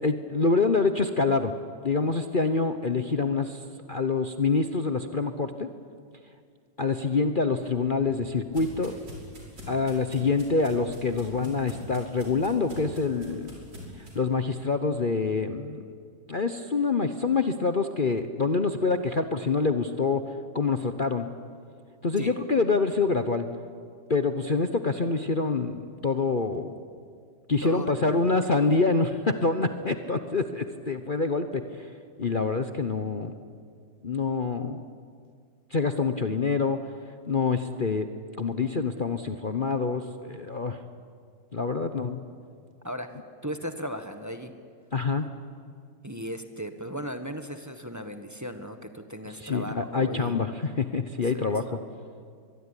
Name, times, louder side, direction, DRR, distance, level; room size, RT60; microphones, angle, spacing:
voice 1, 0.0-1.5 1.8-3.6 3.9-5.7 6.8-9.0 9.7-13.5 14.1-15.8 16.3-20.3 20.5-21.3 22.0-23.5 24.1-26.7 27.5-31.6 32.2-33.3 34.0-34.8 35.7-36.8 37.3-38.1 38.4-40.8 41.5-42.2 44.9-45.3 49.4-51.6, left 4 dB, 35° left, 8 dB, 0.9 m, -26 dB
sound 1, 7.6-14.2, equal, 75° right, 6.3 m, -45 dB
voice 2, 27.6-28.4 42.8-43.1 43.4-44.5 46.0-50.4 51.2-51.8, equal, 10° right, 7 dB, 1.3 m, -37 dB
24.0 x 22.5 x 10.0 m, 2.2 s
omnidirectional pair, 1.9 m